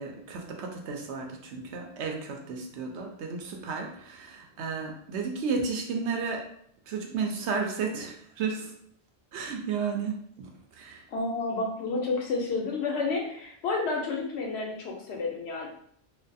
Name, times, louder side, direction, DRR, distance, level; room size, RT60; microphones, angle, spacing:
voice 1, 0.0-6.4 6.9-8.7 9.3-11.0, right 5 dB, 75° right, 2 dB, 0.8 m, -33 dB
voice 2, 11.1-15.7, left 3 dB, 75° left, 0 dB, 0.9 m, -30 dB
2.5 x 2.3 x 2.6 m, 0.65 s
omnidirectional pair, 1.2 m